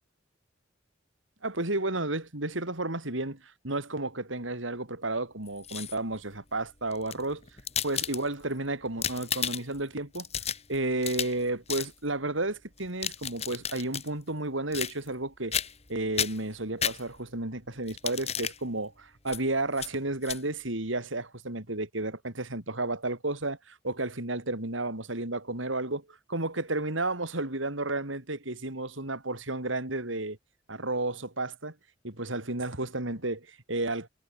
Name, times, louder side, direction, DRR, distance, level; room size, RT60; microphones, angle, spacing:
voice 1, 1.4-7.4 7.8-10.3 10.7-15.5 15.9-30.4 30.7-31.7 32.0-34.1, right 2 dB, 80° right, 4.2 m, -32 dB
sound 1, 5.5-6.2 6.9-8.5 8.9-9.8 10.1-11.4 11.7-11.9 12.8-14.1 14.7-15.2 15.5-15.9 16.2-17.4 17.9-18.6 19.3-19.4 19.8-19.9 20.2-20.4, left 8 dB, 30° left, 3.2 m, -33 dB
head